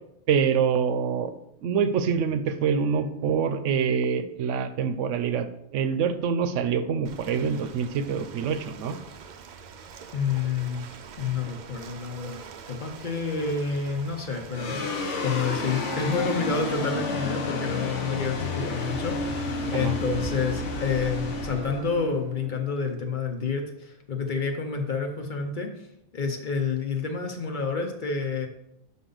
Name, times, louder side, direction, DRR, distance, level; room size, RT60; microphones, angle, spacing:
voice 1, 0.3-1.3 1.6-9.0 19.7-19.9, right 6 dB, 80° right, 10 dB, 0.9 m, -25 dB
Ocean, 7.0-16.9, right 6 dB, 60° right, 0.5 m, -45 dB
voice 2, 10.1-10.8 11.2-12.4 12.7-14.9 15.2-25.9 26.1-28.5, left 5 dB, 45° left, 3 dB, 0.8 m, -29 dB
sound 1, 14.5-23.1, left 3 dB, 75° left, 1.1 m, -31 dB
6.2 x 5.4 x 3.9 m, 0.81 s
omnidirectional pair, 1.3 m